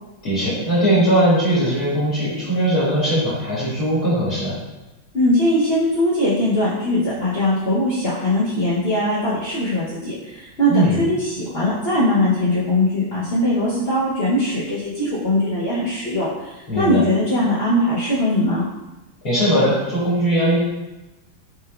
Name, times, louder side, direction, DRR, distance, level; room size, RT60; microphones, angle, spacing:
voice 1, 0.2-4.6 10.7-11.0 16.7-17.0 19.2-20.6, right 1 dB, 50° left, -11 dB, 1.5 m, -19 dB
voice 2, 5.1-18.6, left 1 dB, 75° left, -10 dB, 0.5 m, -20 dB
4.4 x 3.3 x 2.3 m, 1.1 s
omnidirectional pair, 2.2 m